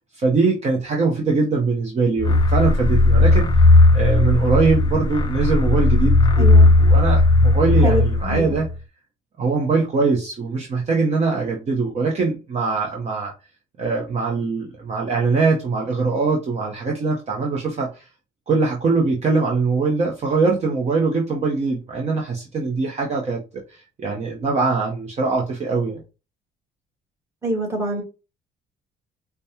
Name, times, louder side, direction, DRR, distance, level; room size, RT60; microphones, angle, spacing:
voice 1, 0.1-3.5 3.9-8.7 9.4-13.3 13.8-18.1 18.5-23.4 23.7-26.0, right 4 dB, 40° right, 0 dB, 0.9 m, -22 dB
sound 1, 2.2-8.7, left 2 dB, 25° left, 0.5 m, -16 dB
voice 2, 6.4-6.7 7.8-8.4 27.4-28.0, right 1 dB, 15° right, -1 dB, 1.7 m, -25 dB
5.0 x 2.2 x 2.8 m, 0.31 s
cardioid pair, 110°, 17 cm